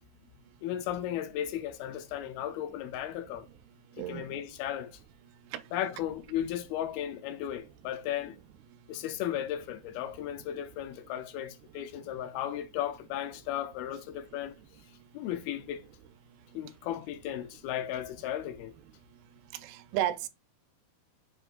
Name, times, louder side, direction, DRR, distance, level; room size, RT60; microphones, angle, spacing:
voice 1, 0.6-3.5 4.0-4.9 5.7-8.4 8.9-14.6 15.1-15.8 16.5-18.7, left 11 dB, 80° left, 2.3 m, -35 dB
voice 2, 4.0-4.3 5.5-5.6 19.6-20.3, right 12 dB, 85° right, 2.6 m, -32 dB
7.6 x 5.9 x 2.4 m
omnidirectional pair, 4.6 m